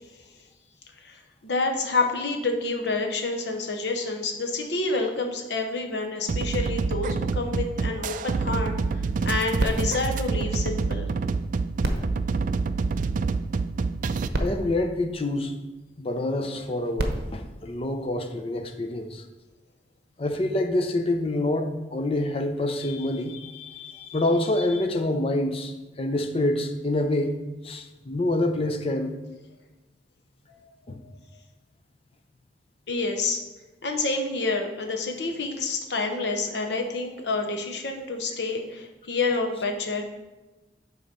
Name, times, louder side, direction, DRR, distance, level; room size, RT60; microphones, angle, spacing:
voice 1, 1.0-11.1 30.5-30.6 32.9-33.4 33.8-40.1, left 3 dB, 75° left, 3 dB, 0.9 m, -28 dB
sound 1, 6.3-14.3, right 4 dB, 50° right, 0.3 m, -27 dB
sound 2, 9.6-11.2 11.8-13.4 14.0-14.1 14.3-15.9 16.7-18.5 19.3-19.4, right 1 dB, 65° right, 0.8 m, -33 dB
voice 2, 14.4-15.5 16.0-19.2 20.2-27.4 27.6-29.2 30.9-31.0, left 1 dB, 35° left, 7 dB, 0.6 m, -27 dB
7.2 x 4.0 x 5.4 m, 1.1 s
head